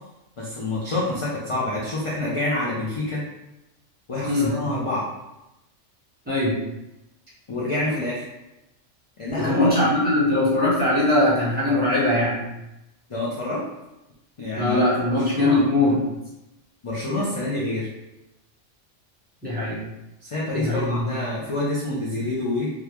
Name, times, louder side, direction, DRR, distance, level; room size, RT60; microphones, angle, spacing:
voice 1, 0.4-3.2 4.1-5.0 7.5-8.2 9.2-9.9 13.1-13.6 14.4-14.8 15.1-15.6 16.8-17.9 20.2-22.7, left 2 dB, 40° left, -7 dB, 0.4 m, -27 dB
voice 2, 9.3-12.5 14.6-16.0 19.4-19.8 20.5-21.1, left 1 dB, 10° right, -9 dB, 1.1 m, -21 dB
3.6 x 2.2 x 2.9 m, 0.94 s
omnidirectional pair, 1.3 m